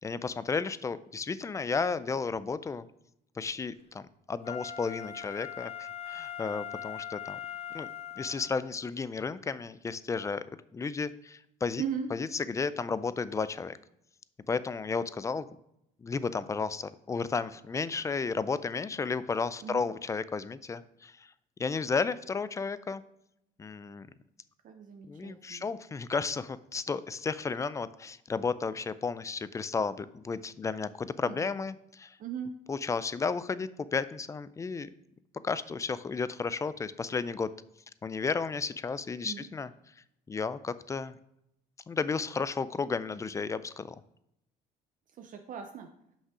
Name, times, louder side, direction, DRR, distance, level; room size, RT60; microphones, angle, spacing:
voice 1, 0.0-2.9 3.4-4.0 4.3-7.4 7.7-7.9 8.2-10.4 10.7-11.8 12.1-13.8 14.5-15.5 16.0-21.1 21.6-23.0 23.6-24.1 25.1-32.1 32.7-34.9 35.4-37.5 38.0-39.7 40.3-41.2 41.9-44.0, left 4 dB, 20° left, 16 dB, 0.3 m, -33 dB
Wind instrument woodwind instrument, 4.4-8.7 9.2-9.3, left 9 dB, 35° left, 0.7 m, -41 dB
voice 2, 11.8-12.1 19.6-19.9 24.6-25.7 31.2-31.5 32.2-32.5 39.2-39.5 45.2-45.9, right 7 dB, 50° right, 5 dB, 0.6 m, -38 dB
5.9 x 5.5 x 4.8 m, 0.79 s
cardioid pair, 110°, 17 cm